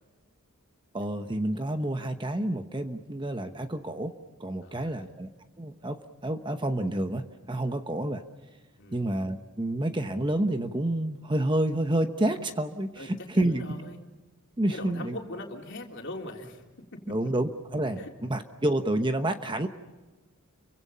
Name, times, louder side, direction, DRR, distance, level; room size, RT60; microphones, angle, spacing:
voice 1, 0.9-4.1 4.4-5.3 5.6-8.2 8.9-13.6 14.6-15.2 17.1-19.7, right 1 dB, 20° right, 7 dB, 1.0 m, -29 dB
voice 2, 4.6-5.1 8.8-9.0 13.0-13.1 13.3-14.0 14.7-16.6 16.9-17.2 18.0-18.1, left 1 dB, 55° left, 1 dB, 3.6 m, -41 dB
30.0 x 24.5 x 5.6 m, 1.2 s
head